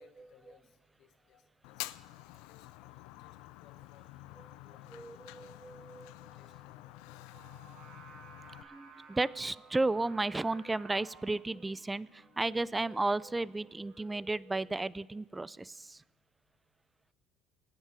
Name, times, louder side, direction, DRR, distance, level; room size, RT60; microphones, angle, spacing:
voice 1, 0.0-1.8 2.3-5.5 6.3-7.3, left 8 dB, 65° left, 8 dB, 1.2 m, -65 dB
Fire, 1.6-8.6, left 18 dB, 80° left, 0.4 m, -48 dB
voice 2, 4.9-6.1 8.7-16.0, right 2 dB, 15° right, 21 dB, 0.4 m, -34 dB
Singing, 7.3-14.0, right 4 dB, 75° right, 6.2 m, -57 dB
27.0 x 9.2 x 5.0 m, 1.3 s
supercardioid pair, 90°, 0 cm